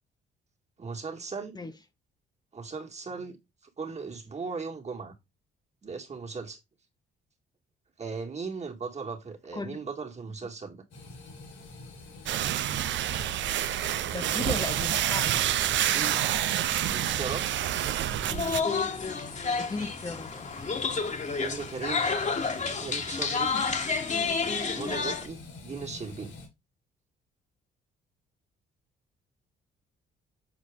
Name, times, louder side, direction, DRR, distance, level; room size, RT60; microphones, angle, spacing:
voice 1, 0.8-1.6 2.5-3.4 3.6-5.1 5.8-6.6 8.0-10.8 15.7-16.2 16.9-17.5 21.4-22.1 22.8-23.6 24.7-26.3, right 5 dB, 35° right, 2.0 m, -37 dB
sound 1, 10.9-26.5, left 2 dB, 90° left, 4.0 m, -46 dB
sound 2, 12.3-18.6, right 12 dB, 70° right, 0.6 m, -28 dB
voice 2, 14.1-15.4 19.6-20.5, left 3 dB, 20° left, 0.7 m, -36 dB
sound 3, 18.3-25.3, left 5 dB, 35° left, 1.6 m, -30 dB
7.5 x 4.6 x 3.7 m
cardioid pair, 90°, 20 cm